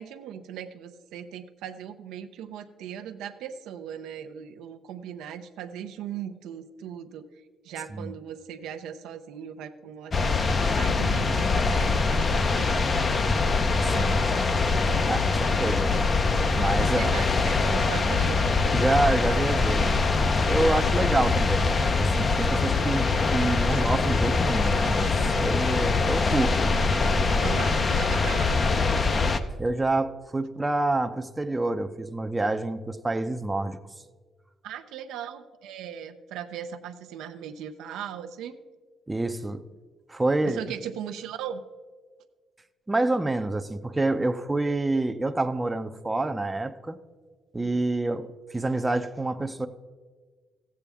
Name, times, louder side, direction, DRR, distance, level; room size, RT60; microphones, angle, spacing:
voice 1, 0.0-7.2 7.6-13.4 16.8-18.5 19.5-19.7 23.7-23.8 27.4-28.7 34.6-38.6 40.4-41.6, right 9 dB, 90° right, 8 dB, 0.5 m, -38 dB
sound 1, 10.1-29.4, left 4 dB, 40° left, 0.6 m, -23 dB
voice 2, 13.8-14.6 15.1-16.1 16.5-17.1 18.7-19.9 20.4-26.6 29.6-33.8 39.1-39.6 40.1-40.6 42.9-47.0 47.5-49.7, right 2 dB, 15° right, 8 dB, 0.5 m, -27 dB
14.5 x 8.4 x 3.5 m, 1.5 s
cardioid pair, 90°, 0 cm